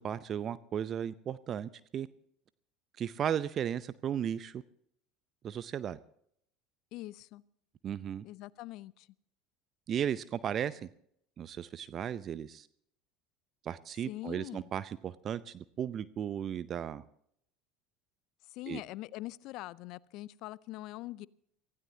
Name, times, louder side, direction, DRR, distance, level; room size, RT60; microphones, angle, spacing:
voice 1, 0.0-2.1 3.0-4.6 5.4-6.0 7.8-8.2 9.9-10.9 11.4-12.7 13.6-17.0 18.7-18.8, right 9 dB, 40° right, 16 dB, 0.6 m, -35 dB
voice 2, 6.9-7.4 8.2-9.1 14.1-14.7 18.5-21.3, left 17 dB, 60° left, 22 dB, 0.5 m, -43 dB
24.5 x 16.0 x 2.8 m, 0.69 s
hypercardioid pair, 70°, 0 cm